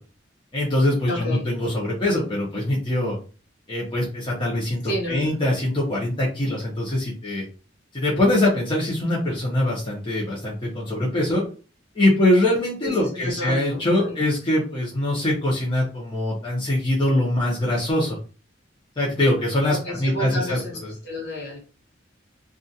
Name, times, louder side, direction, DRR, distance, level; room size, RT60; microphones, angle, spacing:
voice 1, 0.5-3.2 3.7-4.8 5.1-7.4 7.9-11.4 11.9-18.2 19.0-20.9, left 1 dB, 25° left, -6 dB, 0.7 m, -23 dB
voice 2, 1.1-1.4 4.8-5.3 12.8-14.2 19.7-21.6, left 1 dB, 55° left, -3 dB, 1.2 m, -31 dB
2.4 x 2.4 x 2.7 m, 0.36 s
head